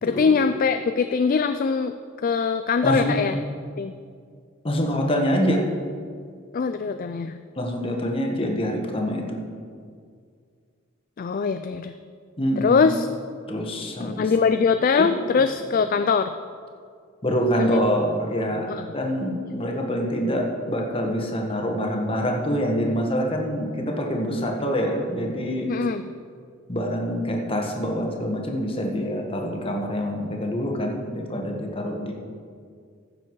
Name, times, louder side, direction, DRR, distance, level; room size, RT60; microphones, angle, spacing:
voice 1, 0.0-1.9 2.2-3.4 3.8-3.9 6.5-7.4 11.2-11.9 12.6-13.1 14.0-16.3 17.6-17.8 18.7-18.9 25.7-26.0, left 5 dB, 40° left, 9 dB, 0.3 m, -22 dB
voice 2, 2.8-3.2 4.6-5.6 7.6-9.5 12.4-12.8 13.5-14.3 15.0-15.2 17.2-25.7 26.7-32.1, equal, 25° left, 1 dB, 1.4 m, -25 dB
15.0 x 7.0 x 4.7 m, 2.1 s
head